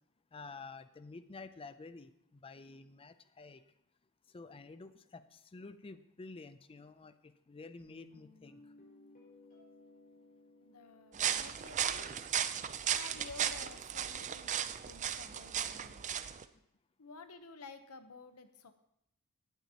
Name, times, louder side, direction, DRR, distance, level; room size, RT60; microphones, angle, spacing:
voice 1, 0.3-3.6 4.3-8.6, left 3 dB, 25° left, 12 dB, 0.4 m, -50 dB
Guitar, 7.8-12.8, left 2 dB, 40° left, 5.1 m, -61 dB
voice 2, 10.6-12.1 12.9-16.1 17.0-18.7, left 4 dB, 80° left, 9 dB, 0.9 m, -52 dB
sound 1, 11.1-16.4, right 9 dB, 35° right, 0.4 m, -36 dB
16.5 x 9.1 x 2.9 m, 0.77 s
head